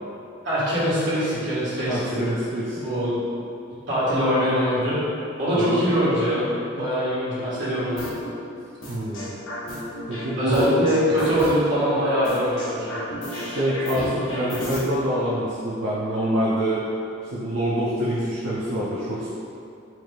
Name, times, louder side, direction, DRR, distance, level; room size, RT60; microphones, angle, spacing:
voice 1, 0.4-2.1 2.7-3.2 3.9-5.0 5.4-6.5 6.7-8.0 10.4-13.0, equal, 60° right, -11 dB, 1.4 m, -23 dB
voice 2, 1.9-2.8 5.5-5.8 8.9-9.4 10.1-10.7 13.3-16.8 17.2-19.3, right 1 dB, 80° right, -10 dB, 0.6 m, -26 dB
sound 1, 8.0-8.3 8.8-10.2 10.5-11.7 12.2-14.8, equal, 70° left, 0.8 m, -33 dB
4.3 x 2.5 x 3.3 m, 2.6 s
head